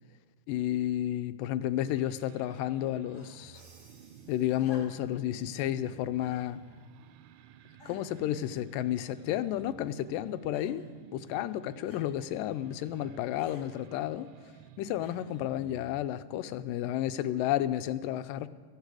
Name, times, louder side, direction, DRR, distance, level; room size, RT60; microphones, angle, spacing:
voice 1, 0.5-3.6 4.3-6.6 7.9-10.8 11.1-14.3 14.8-18.5, left 12 dB, 90° left, 13 dB, 2.3 m, -31 dB
sound 1, 1.9-16.1, right 10 dB, 75° right, 1.8 m, -52 dB
sound 2, 3.1-3.6 4.6-5.2 6.2-6.5 7.2-7.3 7.8-8.2 9.1-9.6 10.5-10.9 11.9-12.1 13.4-13.7 15.0-15.4 16.5-16.6, left 3 dB, 40° left, 1.1 m, -54 dB
Crash cymbal, 3.5-5.2, right 2 dB, 40° right, 3.0 m, -60 dB
17.0 x 14.5 x 4.8 m, 1.5 s
omnidirectional pair, 3.8 m